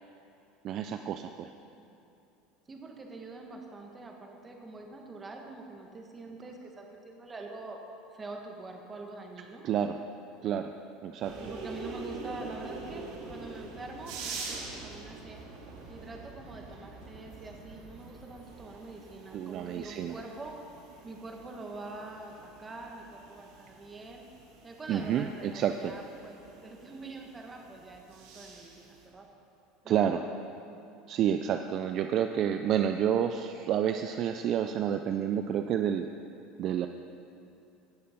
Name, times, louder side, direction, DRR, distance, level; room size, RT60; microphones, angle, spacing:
voice 1, 0.6-1.5 9.6-10.0 10.4-10.7 11.0-11.4 19.3-20.1 24.9-26.0 29.9-30.2 31.1-36.1 36.6-36.9, right 9 dB, 50° right, 7 dB, 0.4 m, -29 dB
voice 2, 2.7-7.8 8.1-9.7 11.4-15.4 15.9-20.5 21.0-24.3 24.6-29.3 29.8-30.4, right 3 dB, 20° right, 1 dB, 1.7 m, -45 dB
sound 1, 11.2-29.0, right 3 dB, 75° right, 2.5 m, -45 dB
17.5 x 6.7 x 5.2 m, 2.8 s
supercardioid pair, 115°, 0 cm